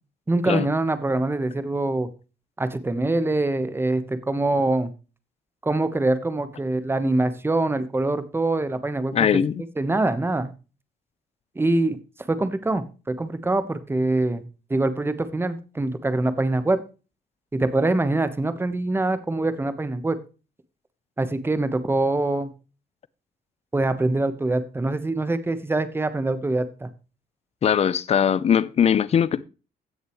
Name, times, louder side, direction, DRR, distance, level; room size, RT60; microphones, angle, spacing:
voice 1, 0.3-2.1 2.6-4.9 5.6-9.1 9.8-10.5 11.5-12.0 12.3-14.4 14.7-16.8 17.5-20.2 21.2-22.5 23.7-26.9, right 2 dB, 15° right, 1.2 m, -24 dB
voice 2, 9.1-9.6 27.6-29.4, left 8 dB, 40° left, 0.6 m, -20 dB
16.0 x 6.6 x 3.1 m
cardioid pair, 110°, 17 cm